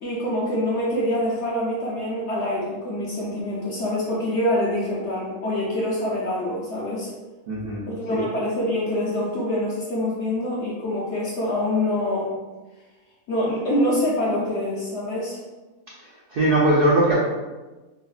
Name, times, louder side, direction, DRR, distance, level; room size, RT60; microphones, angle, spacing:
voice 1, 0.0-7.1 7.9-12.3 13.3-15.4, left 1 dB, 65° left, -5 dB, 0.7 m, -25 dB
voice 2, 7.5-7.9 8.1-8.2 16.3-17.2, right 1 dB, 75° right, -6 dB, 0.5 m, -20 dB
3.1 x 2.1 x 2.4 m, 1.2 s
omnidirectional pair, 1.6 m